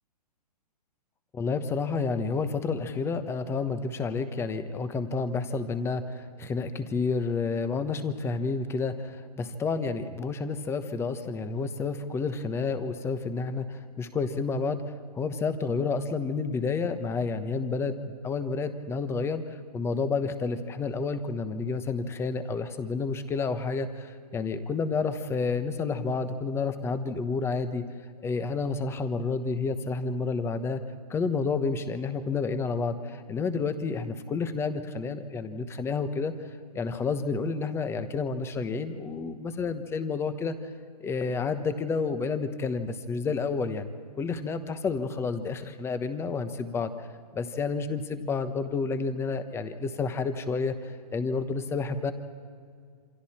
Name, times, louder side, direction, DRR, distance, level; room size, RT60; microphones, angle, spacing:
voice 1, 1.3-14.8 15.1-17.9 18.2-27.8 28.2-30.8 31.1-36.3 36.7-40.7 41.0-46.9 47.3-52.1, left 4 dB, 10° left, 10 dB, 1.1 m, -30 dB
28.0 x 25.0 x 4.4 m, 2.1 s
hypercardioid pair, 140°, 21 cm